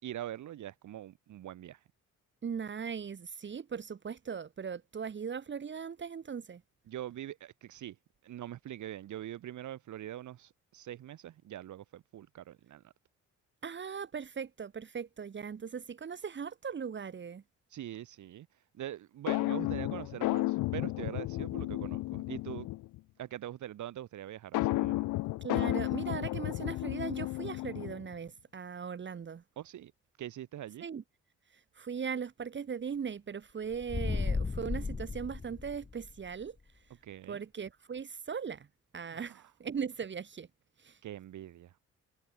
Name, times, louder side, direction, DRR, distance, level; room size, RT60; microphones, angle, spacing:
voice 1, 0.0-1.8 6.9-8.0 8.2-12.9 17.7-18.5 18.7-22.7 23.2-25.0 29.6-29.9 30.2-30.9 37.0-37.4 39.1-39.4 41.0-41.7, right 12 dB, 75° right, 4.5 m, -43 dB
voice 2, 2.4-6.6 13.6-17.4 25.4-29.4 30.8-31.0 31.8-36.6 37.3-38.7 38.9-40.5 40.8-41.0, right 6 dB, 40° right, 1.4 m, -39 dB
sound 1, 19.3-23.0 24.5-28.1, left 19 dB, 85° left, 0.7 m, -33 dB
sound 2, 33.7-36.2, left 4 dB, 15° left, 0.6 m, -34 dB
cardioid pair, 90°, 30 cm